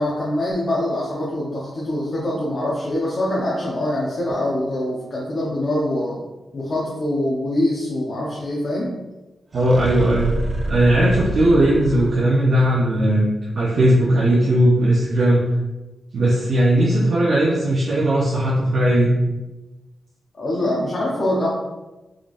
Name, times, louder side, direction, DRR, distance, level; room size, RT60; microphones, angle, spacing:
voice 1, 0.0-6.2 6.5-8.9 20.3-21.5, left 1 dB, 45° left, -6 dB, 0.8 m, -24 dB
sound 1, 9.5-12.5, right 1 dB, 35° right, 0.3 m, -28 dB
voice 2, 9.5-10.3 10.6-13.3 13.5-15.4 16.1-19.1 20.6-20.7, right 1 dB, 65° right, -6 dB, 0.7 m, -17 dB
3.8 x 3.3 x 2.5 m, 1.1 s
cardioid pair, 95°, 0 cm